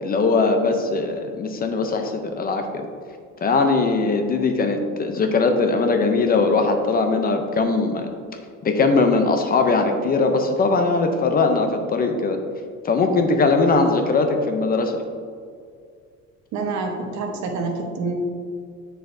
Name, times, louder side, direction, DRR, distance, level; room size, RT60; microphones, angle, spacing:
voice 1, 0.0-2.7 3.4-8.1 8.6-12.4 12.8-15.0, left 3 dB, 30° left, 5 dB, 0.5 m, -20 dB
voice 2, 16.5-18.1, right 4 dB, 65° right, 3 dB, 1.0 m, -27 dB
7.9 x 6.5 x 2.6 m, 2.2 s
cardioid pair, 155°, 30 cm